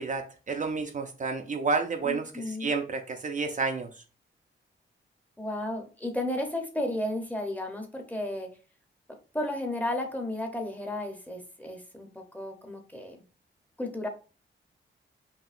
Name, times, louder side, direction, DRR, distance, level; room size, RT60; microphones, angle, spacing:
voice 1, 0.0-2.2 2.6-3.9, right 4 dB, 40° right, 4 dB, 0.4 m, -30 dB
voice 2, 2.0-2.7 5.4-8.5 9.1-13.2 13.8-14.1, left 1 dB, 10° left, 3 dB, 0.7 m, -33 dB
5.4 x 2.7 x 2.5 m, 0.34 s
wide cardioid pair, 140°, 20 cm